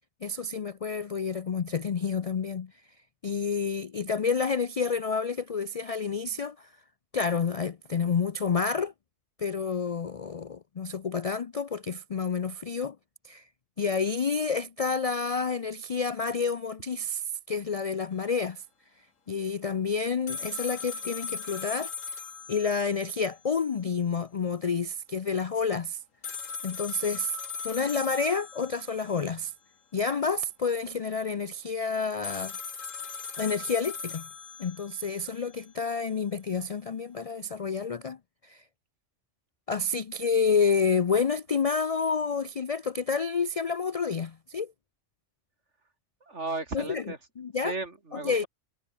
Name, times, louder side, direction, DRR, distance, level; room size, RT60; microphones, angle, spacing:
voice 1, 0.2-2.7 3.2-6.7 7.1-8.9 9.4-13.0 13.2-13.5 13.8-18.6 19.3-21.9 22.5-26.0 26.6-27.4 27.6-29.5 29.9-32.6 33.4-34.3 34.6-38.6 39.7-44.7 46.7-47.0 47.4-47.7 48.2-48.4, left 5 dB, 50° left, 0.4 m, -29 dB
sound 1, 20.3-23.3 23.6-23.7 26.2-29.3 32.2-35.3, left 5 dB, 80° left, 2.3 m, -38 dB
voice 2, 46.2-47.2 47.6-48.5, right 3 dB, 65° right, 3.5 m, -35 dB
omnidirectional pair, 1.3 m